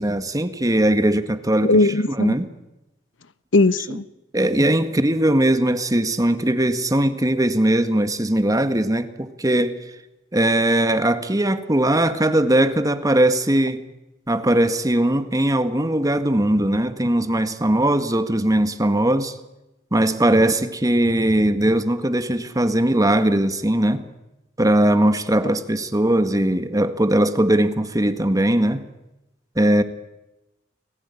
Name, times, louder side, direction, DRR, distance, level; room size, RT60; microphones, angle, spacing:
voice 1, 0.0-1.7 2.1-2.5 3.9-4.0 4.3-9.8 10.3-13.8 14.3-19.4 19.9-24.1 24.6-28.9 29.6-29.8, right 1 dB, 20° right, 1.8 m, -20 dB
voice 2, 1.6-2.3 3.5-4.0, left 2 dB, 75° left, 1.2 m, -18 dB
30.0 x 20.0 x 10.0 m
head